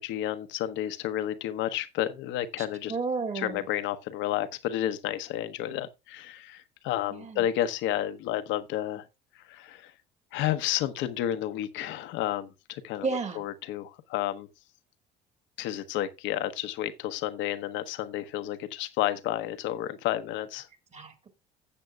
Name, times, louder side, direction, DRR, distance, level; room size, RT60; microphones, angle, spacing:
voice 1, 0.0-2.9 3.3-9.0 9.5-9.9 10.3-13.1 13.4-14.5 15.6-20.7, left 12 dB, 65° left, 1.0 m, -31 dB
voice 2, 2.6-3.6 7.1-7.5 13.0-13.4 20.9-21.3, right 4 dB, 30° right, 2.1 m, -32 dB
15.5 x 7.7 x 2.3 m
hypercardioid pair, 65°, 21 cm